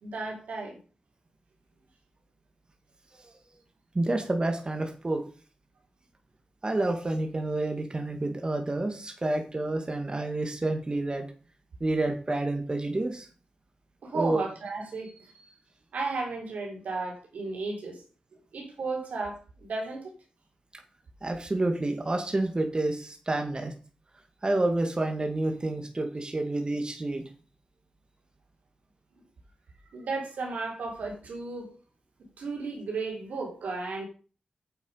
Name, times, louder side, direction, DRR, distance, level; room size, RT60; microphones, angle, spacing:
voice 1, 0.0-0.8 14.0-15.3 15.9-18.0 18.5-20.1 29.9-31.7 32.4-34.0, right 3 dB, 85° right, 3.6 m, -34 dB
voice 2, 3.9-5.2 6.6-11.3 11.8-13.3 14.1-14.4 20.7-20.8 21.2-23.7 24.4-27.2, right 2 dB, 35° right, 2.1 m, -29 dB
8.9 x 7.1 x 5.6 m
cardioid pair, 50°, 3 cm